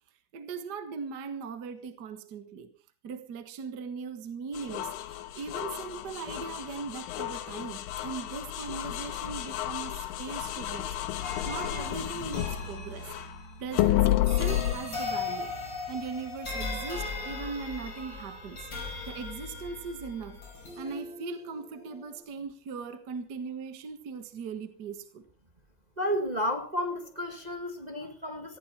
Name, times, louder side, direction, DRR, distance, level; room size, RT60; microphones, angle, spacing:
voice 1, 0.3-2.7 3.0-13.1 13.6-15.5 15.9-18.7 19.0-20.4 20.8-25.3, right 5 dB, 50° right, 1.2 m, -39 dB
sound 1, 4.5-13.3 13.7-14.8, left 14 dB, 90° left, 2.8 m, -31 dB
sound 2, 11.2-22.2, left 3 dB, 30° left, 6.3 m, -39 dB
voice 2, 26.0-28.6, equal, 20° right, 1.1 m, -32 dB
18.0 x 15.0 x 4.4 m
omnidirectional pair, 3.9 m